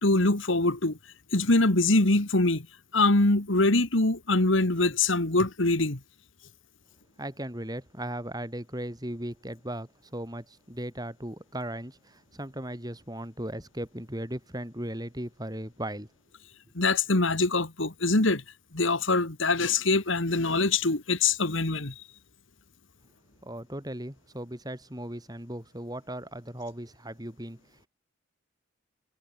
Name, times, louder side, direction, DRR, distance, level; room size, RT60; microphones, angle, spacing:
voice 1, 0.0-1.0 1.3-2.7 2.9-6.0 16.7-18.4 18.7-21.9, left 2 dB, 70° left, 2.3 m, -24 dB
voice 2, 7.2-16.1 23.4-27.6, right 1 dB, 20° right, 4.9 m, -37 dB
head